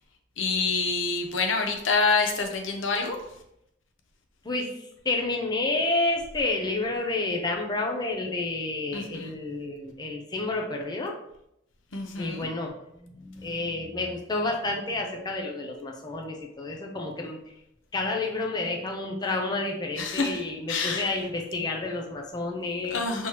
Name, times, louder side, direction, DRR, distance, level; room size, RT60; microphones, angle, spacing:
voice 1, 0.4-3.2 8.9-9.3 11.9-12.5 20.0-20.4 20.7-21.1 22.9-23.3, left 4 dB, 90° left, 4 dB, 0.7 m, -27 dB
voice 2, 4.4-11.1 12.2-12.7 13.0-17.4 17.9-23.0, left 2 dB, 20° left, 1 dB, 0.5 m, -30 dB
5.6 x 3.0 x 3.0 m, 0.80 s
head